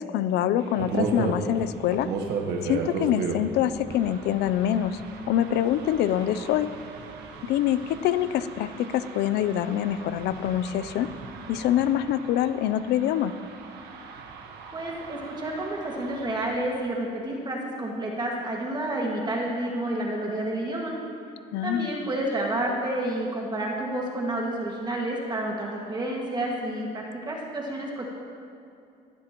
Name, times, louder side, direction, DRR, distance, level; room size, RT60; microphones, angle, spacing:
voice 1, 0.0-2.1 2.6-5.0 5.3-6.7 7.5-11.1 11.5-13.3 21.5-21.9, left 11 dB, 80° left, 13 dB, 0.5 m, -25 dB
sound 1, 0.6-16.7, right 5 dB, 80° right, 1.4 m, -36 dB
voice 2, 14.7-21.0 21.6-28.1, right 1 dB, 25° right, -2 dB, 1.9 m, -30 dB
16.5 x 16.0 x 3.0 m, 2.5 s
cardioid pair, 110°, 17 cm